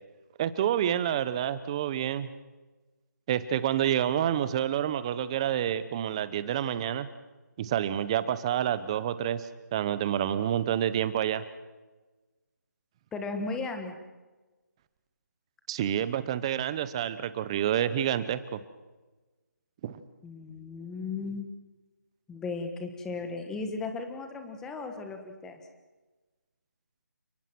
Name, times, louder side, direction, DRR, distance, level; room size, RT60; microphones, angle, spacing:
voice 1, 0.4-2.3 3.3-7.1 7.6-11.4 15.7-18.6 19.8-20.0, right 10 dB, 20° right, 14 dB, 0.8 m, -28 dB
voice 2, 13.1-14.0 20.2-21.5 22.3-25.6, left 3 dB, 5° left, 6 dB, 1.4 m, -36 dB
30.0 x 18.5 x 6.1 m, 1.2 s
figure-of-eight pair, 165°, 10 cm